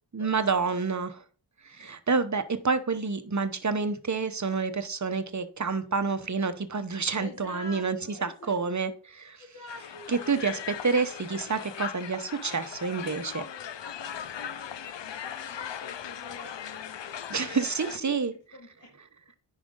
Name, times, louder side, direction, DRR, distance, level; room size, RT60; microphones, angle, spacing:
voice 1, 0.1-1.2 1.7-8.0 8.2-9.4 10.1-13.4 17.3-18.3, right 4 dB, 40° right, 10 dB, 0.9 m, -28 dB
voice 2, 5.6-6.0 7.2-8.6 9.4-10.8 13.0-18.2 18.5-18.9, left 2 dB, 45° left, -2 dB, 2.3 m, -47 dB
Crowd, 9.7-18.0, left 9 dB, 70° left, 0.6 m, -39 dB
10.0 x 5.0 x 3.8 m, 0.40 s
wide cardioid pair, 65°, 45 cm